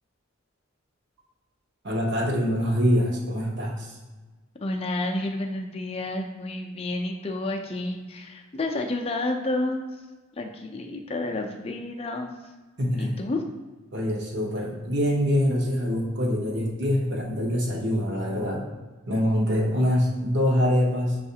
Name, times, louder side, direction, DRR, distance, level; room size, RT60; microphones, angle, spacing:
voice 1, 1.8-4.0 12.8-13.1 13.9-18.6 19.1-21.2, equal, 55° right, -2 dB, 0.8 m, -24 dB
voice 2, 4.6-10.0 10.3-12.4 13.0-13.4, left 2 dB, 25° left, 2 dB, 0.4 m, -30 dB
6.9 x 2.4 x 2.7 m, 1.2 s
head